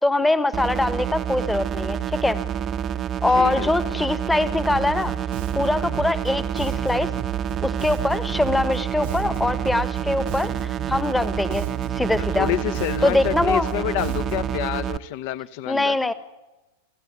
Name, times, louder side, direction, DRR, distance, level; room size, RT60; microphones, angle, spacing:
voice 1, 0.0-2.4 3.2-5.1 5.5-7.1 7.6-11.7 12.0-12.5 13.0-13.7 15.7-16.1, left 2 dB, 5° left, 15 dB, 1.3 m, -23 dB
sound 1, 0.5-15.0, right 9 dB, 30° right, 0.9 m, -28 dB
voice 2, 3.3-3.7 12.4-15.9, left 13 dB, 45° left, 17 dB, 1.1 m, -28 dB
Bass guitar, 4.7-14.6, right 13 dB, 50° right, 1.1 m, -36 dB
28.0 x 14.5 x 9.5 m, 1.1 s
figure-of-eight pair, 90°, 0 cm